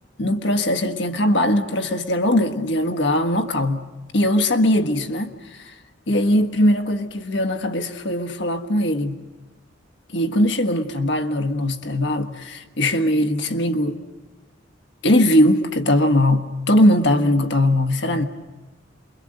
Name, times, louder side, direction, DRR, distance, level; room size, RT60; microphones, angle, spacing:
voice 1, 0.2-3.9 4.1-5.7 6.1-9.2 10.1-13.9 15.0-18.2, left 1 dB, 70° left, 1.5 m, -20 dB
28.0 x 23.0 x 7.8 m
head